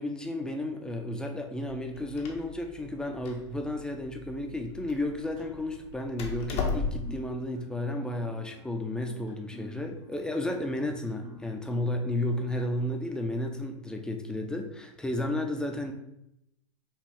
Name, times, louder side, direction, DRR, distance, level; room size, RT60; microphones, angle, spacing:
voice 1, 0.0-15.9, left 1 dB, 5° left, 3 dB, 0.5 m, -32 dB
Door, 1.7-7.3, left 4 dB, 40° left, 0.7 m, -37 dB
sound 1, 5.4-12.8, right 1 dB, 85° right, 1.4 m, -51 dB
5.3 x 2.4 x 3.4 m, 0.82 s
hypercardioid pair, 105°, 16 cm